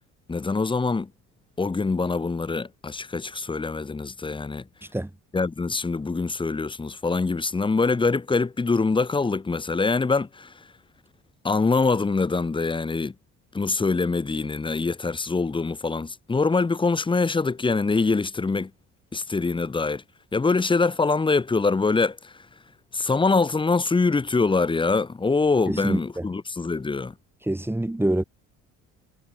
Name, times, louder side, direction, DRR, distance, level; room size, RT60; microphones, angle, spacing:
voice 1, 0.3-1.1 1.6-4.6 5.3-10.5 11.4-13.1 13.5-18.7 19.1-20.0 20.3-22.3 22.9-27.1, left 4 dB, 15° left, 1.1 m, -24 dB
voice 2, 25.7-26.3 27.4-28.2, right 1 dB, 5° right, 3.1 m, -26 dB
cardioid pair, 100°, 33 cm